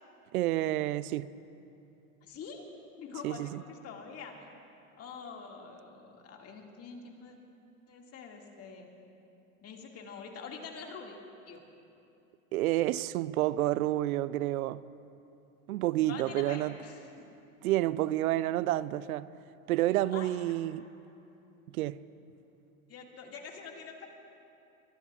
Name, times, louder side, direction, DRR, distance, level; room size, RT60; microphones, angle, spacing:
voice 1, 0.3-1.3 3.2-3.6 12.5-14.8 15.7-16.7 17.6-19.3 19.7-20.8 21.7-22.0, right 15 dB, 80° right, 0.6 m, -29 dB
voice 2, 2.2-2.6 3.0-4.6 5.0-7.4 7.9-8.9 9.6-11.2 11.5-11.6 16.1-17.1 20.1-20.3 22.9-24.1, left 5 dB, 35° left, 2.2 m, -45 dB
24.5 x 18.0 x 2.4 m
hypercardioid pair, 110°, 42 cm